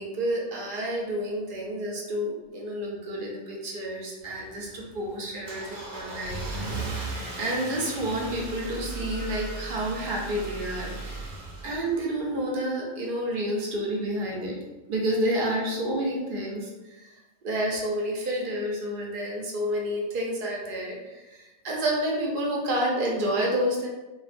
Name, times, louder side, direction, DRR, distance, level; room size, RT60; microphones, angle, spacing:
voice 1, 0.0-11.4 11.6-14.6 14.9-17.1 17.4-23.9, right 1 dB, 60° right, -2 dB, 0.7 m, -30 dB
Car / Engine starting, 4.2-12.4, right 2 dB, 85° right, 0.9 m, -37 dB
2.3 x 2.1 x 2.5 m, 1.1 s
omnidirectional pair, 1.2 m